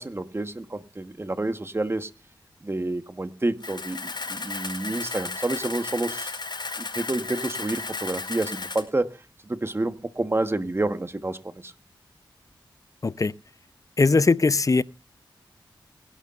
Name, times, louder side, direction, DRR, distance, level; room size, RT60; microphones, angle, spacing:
voice 1, 0.0-2.1 2.6-6.3 6.8-9.2 9.4-11.7, right 2 dB, 30° right, 1.3 m, -29 dB
Camera, 3.6-8.8, left 4 dB, 60° left, 4.8 m, -34 dB
voice 2, 13.0-13.3 14.0-14.8, left 3 dB, 40° left, 0.7 m, -20 dB
22.0 x 11.5 x 2.5 m
cardioid pair, 60°, 9 cm